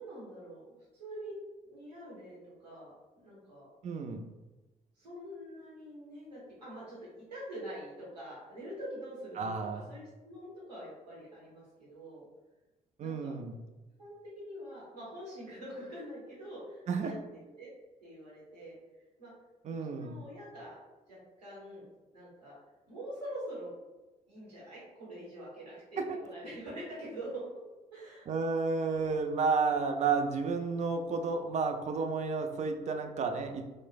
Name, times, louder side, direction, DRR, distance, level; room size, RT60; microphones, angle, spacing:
voice 1, 0.0-1.4 1.6-2.9 3.2-3.7 5.0-9.5 9.9-12.3 13.0-13.3 14.0-17.1 17.6-17.7 18.0-18.8 19.2-19.3 19.7-20.8 21.1-21.9 22.1-22.6 22.9-23.7 24.3-26.0 26.3-27.5 27.9-28.3, right 1 dB, 85° right, -8 dB, 0.8 m, -45 dB
voice 2, 3.8-4.2 9.4-9.9 13.0-13.6 16.9-17.1 19.6-20.2 28.3-33.6, right 4 dB, 35° right, 5 dB, 0.4 m, -31 dB
3.1 x 2.0 x 2.4 m, 1.1 s
figure-of-eight pair, 45°, 21 cm